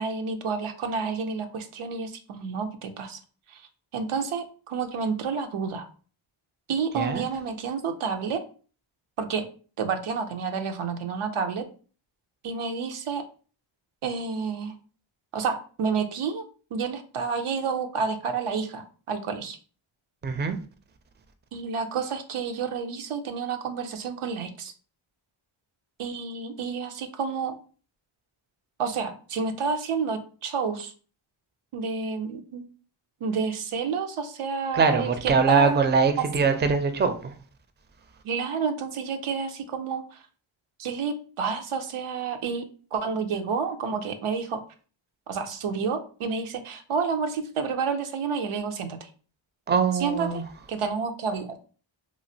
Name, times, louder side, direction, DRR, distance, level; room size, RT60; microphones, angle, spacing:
voice 1, 0.0-3.2 3.5-5.9 6.7-8.4 9.2-9.5 9.8-11.6 12.4-13.2 14.0-14.7 15.3-16.4 16.7-19.6 21.5-24.7 26.0-27.6 28.8-30.9 31.7-32.6 33.2-35.8 36.2-36.3 36.6-36.8 38.2-40.2 40.8-42.6 42.9-44.6 45.3-49.1 49.9-51.5, right 5 dB, 85° right, 0.6 m, -30 dB
voice 2, 20.2-20.6 34.7-37.3 49.7-50.4, right 5 dB, 25° right, 0.4 m, -22 dB
3.1 x 2.4 x 2.6 m
cardioid pair, 60°, 49 cm